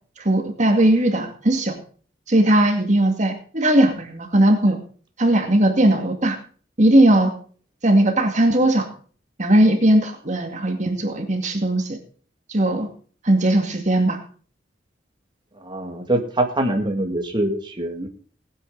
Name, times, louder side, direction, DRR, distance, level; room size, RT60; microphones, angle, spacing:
voice 1, 0.2-1.8 2.3-4.8 5.2-6.4 6.8-7.3 7.8-8.9 9.4-12.0 12.5-12.9 13.2-14.2, right 1 dB, 40° right, 5 dB, 2.2 m, -18 dB
voice 2, 15.6-18.1, right 1 dB, 25° right, 2 dB, 2.2 m, -24 dB
19.0 x 9.6 x 4.0 m, 0.43 s
head